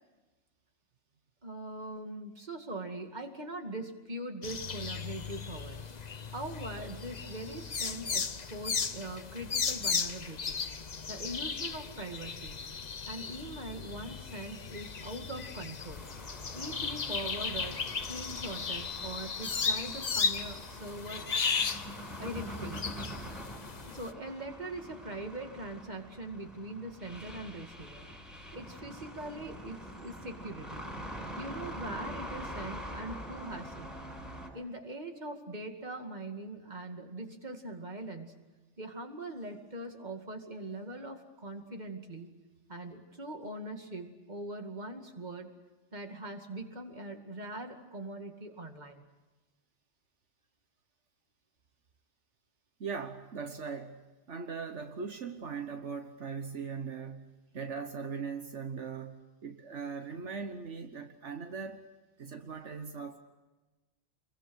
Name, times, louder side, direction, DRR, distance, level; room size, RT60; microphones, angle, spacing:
voice 1, 1.4-5.8 6.3-10.6 11.1-12.6 13.1-16.0 16.5-21.3 22.2-22.9 23.8-28.1 28.5-30.9 31.4-33.9 34.5-38.3 38.8-42.3 42.7-45.5 45.9-49.0, right 1 dB, 40° right, 4 dB, 2.5 m, -42 dB
sound 1, 4.4-24.1, left 5 dB, 40° left, 0.9 m, -36 dB
sound 2, 15.8-34.5, equal, ahead, 7.0 m, -45 dB
voice 2, 52.8-61.9 62.2-63.2, right 5 dB, 75° right, 6 dB, 1.5 m, -40 dB
28.5 x 22.5 x 6.4 m, 1.2 s
omnidirectional pair, 1.2 m